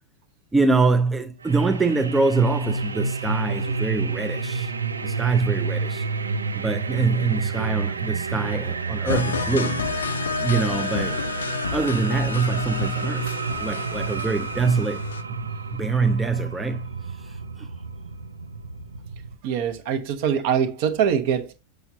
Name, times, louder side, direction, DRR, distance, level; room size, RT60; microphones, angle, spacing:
voice 1, 0.5-4.7 5.0-6.0 6.5-9.8 10.4-11.2 11.7-15.0 15.3-15.4 15.7-16.9 17.2-17.7, right 4 dB, 10° right, 0.5 m, -24 dB
sound 1, 1.4-19.4, right 4 dB, 75° right, 0.5 m, -30 dB
sound 2, 9.1-15.2, left 6 dB, 70° left, 0.5 m, -30 dB
voice 2, 19.4-21.5, right 8 dB, 50° right, 0.9 m, -23 dB
6.9 x 6.3 x 2.7 m
figure-of-eight pair, 90°, 0 cm